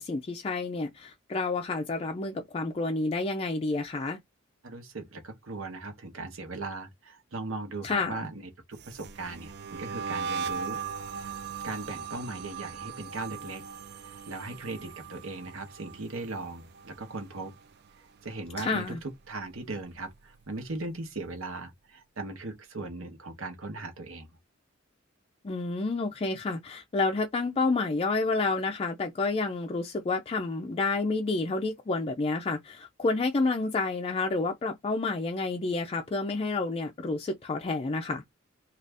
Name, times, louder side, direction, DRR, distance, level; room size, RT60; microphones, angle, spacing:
voice 1, 0.0-4.2 7.8-8.3 18.6-19.0 25.4-38.2, left 3 dB, 30° left, 0.4 m, -29 dB
voice 2, 4.6-10.8 11.1-11.3 11.6-13.6 14.0-17.5 18.0-24.3, right 2 dB, 70° right, 1.0 m, -38 dB
sound 1, 8.7-17.9 18.2-18.6 19.0-20.5, right 6 dB, 55° right, 0.4 m, -39 dB
2.6 x 2.4 x 3.3 m
head